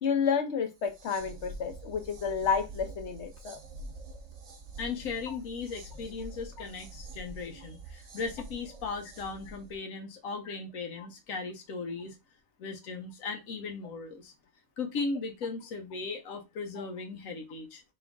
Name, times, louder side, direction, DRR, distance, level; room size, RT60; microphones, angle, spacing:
voice 1, 0.0-3.6 5.3-5.4 10.5-10.6, left 6 dB, 60° left, 1.1 m, -30 dB
sound 1, 0.7-9.8, right 2 dB, 60° right, 1.1 m, -46 dB
voice 2, 4.8-12.2 12.6-14.3 14.8-17.8, left 4 dB, 90° left, 1.1 m, -37 dB
3.6 x 3.0 x 3.5 m
omnidirectional pair, 1.4 m